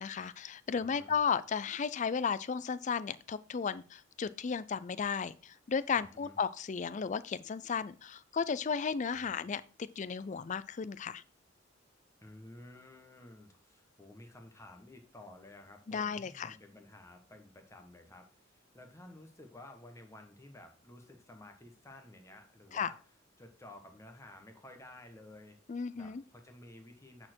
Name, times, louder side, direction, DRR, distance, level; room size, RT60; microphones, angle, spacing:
voice 1, 0.0-9.6 10.0-11.2 15.9-16.6 22.7-22.9 25.7-26.2, left 6 dB, 35° left, 16 dB, 0.4 m, -34 dB
voice 2, 0.7-1.2 6.0-6.4 9.1-9.5 12.2-23.0 23.4-27.3, left 1 dB, 15° left, 4 dB, 1.2 m, -53 dB
8.7 x 4.4 x 4.4 m, 0.39 s
head